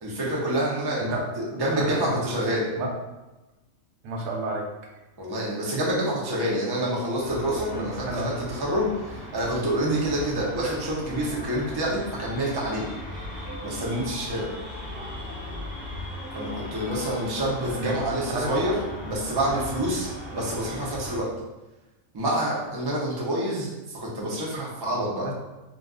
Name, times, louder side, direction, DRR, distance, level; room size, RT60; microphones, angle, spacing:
voice 1, 0.0-1.1 1.4-2.7 5.2-12.8 13.6-14.5 16.3-18.8 19.0-21.3 22.1-25.3, right 1 dB, 35° right, -4 dB, 0.3 m, -27 dB
voice 2, 4.0-4.7 7.7-8.4 17.8-18.0 18.3-18.5 25.2-25.3, right 2 dB, 85° right, 0 dB, 1.0 m, -31 dB
sound 1, 7.2-21.2, left 1 dB, 10° right, 0.9 m, -37 dB
2.5 x 2.3 x 3.6 m, 1.0 s
omnidirectional pair, 1.4 m